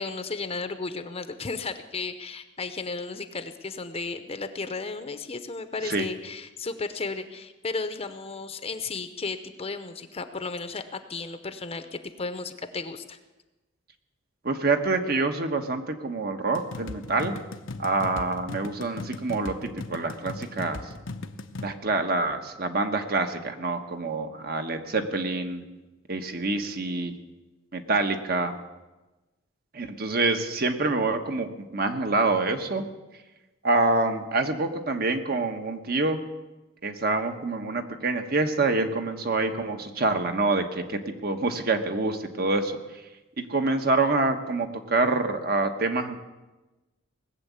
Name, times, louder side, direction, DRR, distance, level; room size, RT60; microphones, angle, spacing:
voice 1, 0.0-13.2, left 4 dB, 30° left, 9 dB, 0.8 m, -34 dB
voice 2, 14.4-17.4 17.8-20.8 21.6-25.6 26.1-27.1 27.7-28.6 29.7-32.8 33.6-36.2 36.8-42.7 43.5-46.2, right 3 dB, 55° right, 6 dB, 1.2 m, -26 dB
sound 1, 16.5-21.7, left 2 dB, 85° left, 0.8 m, -38 dB
19.0 x 7.4 x 8.2 m, 1.1 s
head